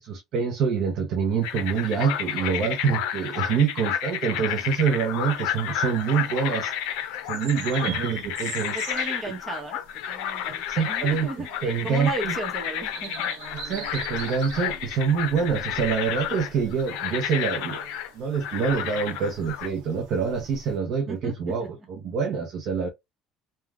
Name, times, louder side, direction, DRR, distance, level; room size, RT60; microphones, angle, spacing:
voice 1, 0.0-6.7 7.3-8.8 10.7-11.3 11.6-12.4 13.5-17.8 18.1-22.9, right 6 dB, 50° right, 0.5 m, -26 dB
sound 1, 1.4-19.7, left 10 dB, 85° left, 0.5 m, -31 dB
sound 2, 4.5-20.8, right 5 dB, 80° right, 0.7 m, -44 dB
voice 2, 7.8-8.1 8.7-9.8 10.1-11.5 11.8-13.3 21.1-21.5, right 2 dB, 20° right, 0.8 m, -35 dB
3.3 x 2.1 x 2.3 m
cardioid pair, 170°, 0 cm